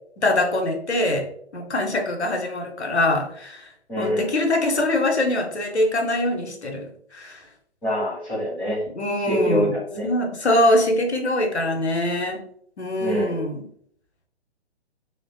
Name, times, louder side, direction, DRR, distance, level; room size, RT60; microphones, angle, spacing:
voice 1, 0.2-7.4 8.9-9.7 10.0-12.4 12.8-13.6, left 1 dB, 80° left, 3 dB, 0.7 m, -23 dB
voice 2, 3.9-4.3 7.8-8.8 9.2-10.1 13.0-13.4, equal, 5° left, -10 dB, 0.5 m, -25 dB
3.0 x 2.0 x 2.7 m, 0.64 s
figure-of-eight pair, 130°, 33 cm